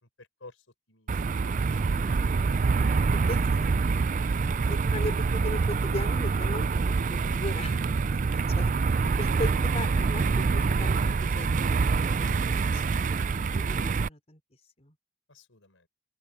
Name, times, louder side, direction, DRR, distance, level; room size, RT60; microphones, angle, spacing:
voice 1, 0.0-2.3 2.9-3.3 8.3-8.6 12.7-13.3 15.3-15.9, left 3 dB, 85° left, 4.6 m, -54 dB
sound 1, 1.1-14.1, right 4 dB, 40° right, 0.4 m, -26 dB
voice 2, 4.7-8.2 8.6-8.7 9.2-12.5 13.1-14.4 14.8-14.9, left 1 dB, 35° left, 4.2 m, -38 dB
open air
head